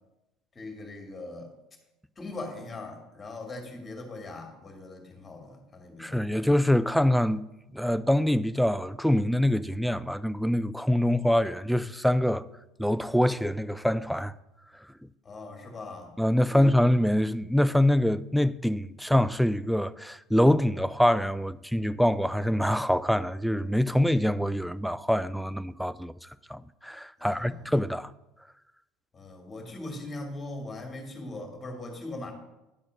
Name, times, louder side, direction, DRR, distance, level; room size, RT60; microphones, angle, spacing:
voice 1, 0.5-1.5 2.2-6.2 15.2-16.1 16.5-16.8 27.2-27.7 29.1-32.3, left 2 dB, 25° left, 2.2 m, -40 dB
voice 2, 6.0-7.4 7.7-12.5 12.8-14.3 16.2-26.1 26.5-28.1, left 1 dB, ahead, 0.4 m, -25 dB
10.0 x 4.2 x 6.2 m
hypercardioid pair, 70°, 0 cm